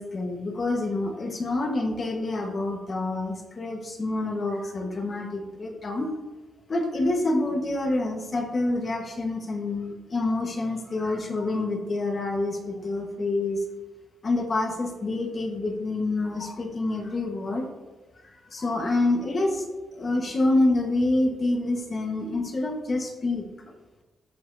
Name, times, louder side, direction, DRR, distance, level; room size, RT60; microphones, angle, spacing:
voice 1, 0.0-6.1 6.7-13.6 14.2-17.7 18.2-19.6 19.9-23.4, left 2 dB, 30° left, 3 dB, 1.3 m, -27 dB
14.0 x 7.6 x 2.7 m, 1.2 s
wide cardioid pair, 145°, 0 cm